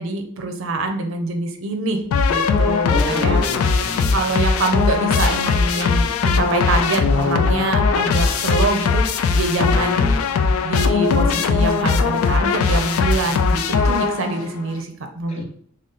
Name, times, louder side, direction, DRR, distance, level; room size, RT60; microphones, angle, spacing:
voice 1, 0.0-3.4 4.1-10.1 10.6-15.4, right 2 dB, 65° right, 5 dB, 0.5 m, -25 dB
sound 1, 2.1-14.5, left 5 dB, 80° left, 0.4 m, -19 dB
voice 2, 2.9-4.3 9.7-10.2 15.3-15.4, left 2 dB, 30° left, -1 dB, 0.7 m, -28 dB
3.8 x 2.0 x 3.9 m, 0.63 s
head